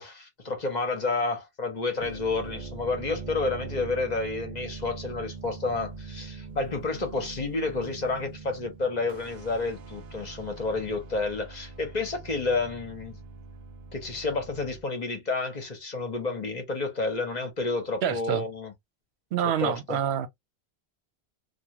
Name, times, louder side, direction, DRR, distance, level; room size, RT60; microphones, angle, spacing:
voice 1, 0.0-13.2 13.9-18.7 19.6-20.0, left 3 dB, 45° left, 0.8 m, -30 dB
sound 1, 1.9-14.8, right 4 dB, 55° right, 0.5 m, -42 dB
voice 2, 18.0-18.5 19.3-20.3, right 9 dB, 80° right, 0.8 m, -27 dB
2.3 x 2.3 x 2.8 m
omnidirectional pair, 1.1 m